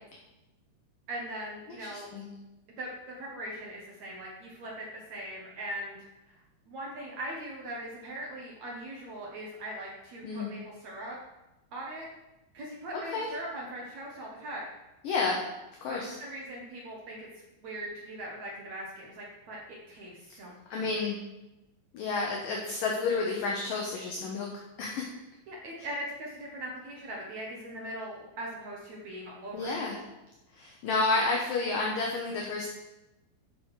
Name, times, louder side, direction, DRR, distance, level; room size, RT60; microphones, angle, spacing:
voice 1, 1.1-2.1 2.8-6.0 6.2-6.4 6.7-11.2 11.7-12.1 12.5-14.6 15.9-20.9 25.5-29.7, right 1 dB, 75° right, -3 dB, 1.6 m, -40 dB
voice 2, 1.7-2.3 10.2-10.5 12.9-13.3 15.0-15.4 15.8-16.1 20.7-21.2 21.9-24.5 24.8-25.1 29.5-30.0 30.5-32.7, left 3 dB, 70° left, -1 dB, 2.1 m, -30 dB
13.0 x 6.3 x 4.9 m, 0.98 s
omnidirectional pair, 5.4 m